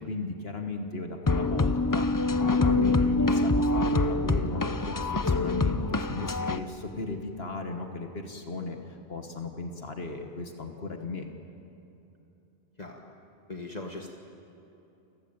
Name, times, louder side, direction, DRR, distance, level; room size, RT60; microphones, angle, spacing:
voice 1, 0.0-11.3, left 3 dB, 70° left, 4 dB, 1.7 m, -36 dB
sound 1, 1.3-6.6, left 2 dB, 25° left, 0.6 m, -25 dB
voice 2, 12.8-13.1 13.5-14.1, left 2 dB, 40° left, 1 dB, 1.6 m, -39 dB
29.5 x 16.5 x 8.9 m, 2.9 s
omnidirectional pair, 1.1 m